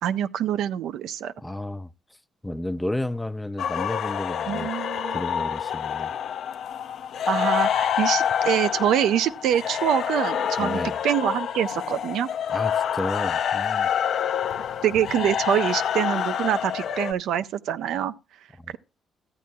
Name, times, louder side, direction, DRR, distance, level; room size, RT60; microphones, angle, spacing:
voice 1, 0.0-1.3 4.5-5.2 7.3-12.3 14.8-18.1, right 10 dB, 80° right, 0.4 m, -25 dB
voice 2, 1.4-1.9 2.4-4.7 5.1-6.1 10.6-11.0 12.5-13.9 18.6-18.8, left 1 dB, 5° left, 0.4 m, -32 dB
sound 1, 3.6-17.1, left 8 dB, 70° left, 0.5 m, -27 dB
14.0 x 8.4 x 2.2 m
cardioid pair, 90°, 0 cm